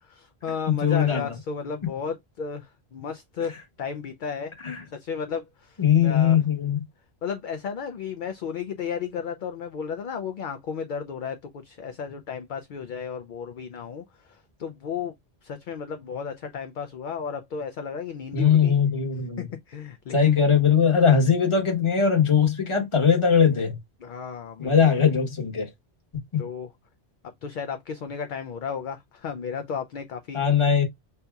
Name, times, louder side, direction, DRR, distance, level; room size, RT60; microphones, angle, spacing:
voice 1, 0.0-4.5 4.9-6.4 7.2-15.1 15.4-18.7 19.4-20.4 24.0-25.0 26.4-26.7 27.4-30.4, left 6 dB, 60° left, 0.6 m, -34 dB
voice 2, 0.7-1.3 4.6-4.8 5.8-6.8 18.3-19.4 20.1-23.8 24.6-25.7 26.3-26.4 30.3-30.8, left 7 dB, 30° left, 1.0 m, -20 dB
5.5 x 2.7 x 2.3 m
omnidirectional pair, 1.1 m